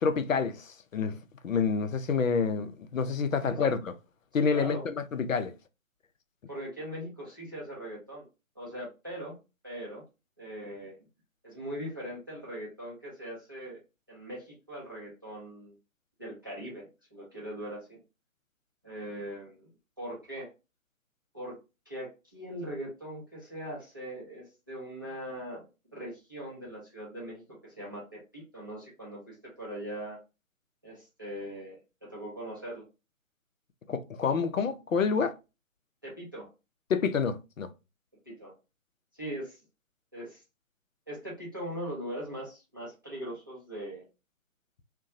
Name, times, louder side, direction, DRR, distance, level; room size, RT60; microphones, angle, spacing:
voice 1, 0.0-1.2 1.4-3.9 4.3-5.5 33.9-35.3 36.9-37.7, left 5 dB, 70° left, 0.5 m, -28 dB
voice 2, 3.4-3.7 4.5-4.8 6.5-8.3 8.6-9.3 9.6-10.0 10.4-11.0 11.4-13.8 14.1-15.7 16.2-18.0 18.8-19.7 20.0-20.5 21.3-21.6 21.9-30.2 30.8-32.9 36.0-36.5 38.3-38.5 39.1-39.6 40.1-40.4 41.1-44.1, equal, 15° right, 0.5 m, -40 dB
2.6 x 2.2 x 2.5 m
figure-of-eight pair, 135°, 41 cm